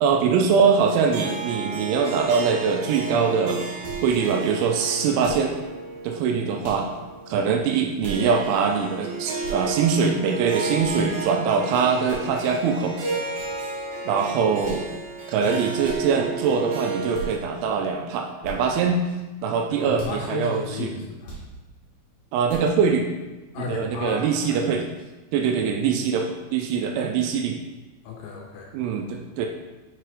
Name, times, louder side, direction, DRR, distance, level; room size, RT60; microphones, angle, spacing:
voice 1, 0.0-3.7 4.0-5.6 6.0-6.9 7.3-12.9 14.1-14.9 15.3-19.0 19.4-21.0 22.3-23.1 23.6-24.8 25.3-27.6 28.7-29.5, right 6 dB, 80° right, 3 dB, 2.8 m, -23 dB
Harp, 0.9-17.3, right 4 dB, 60° right, 3.0 m, -33 dB
sound 1, 3.8-4.1 5.2-5.5 6.6-6.9 8.0-8.2 9.4-9.6 10.8-10.9 12.0-12.3 13.3-13.5 14.6-14.9 15.8-16.0 17.1-17.3 18.4-18.6 19.9-20.2 21.2-21.5 22.4-22.7, right 5 dB, 45° left, 2.3 m, -38 dB
voice 2, 19.7-21.4 23.5-24.6 28.0-28.7, left 4 dB, 80° left, 1 dB, 2.8 m, -34 dB
6.7 x 4.6 x 4.7 m, 1.1 s
omnidirectional pair, 5.7 m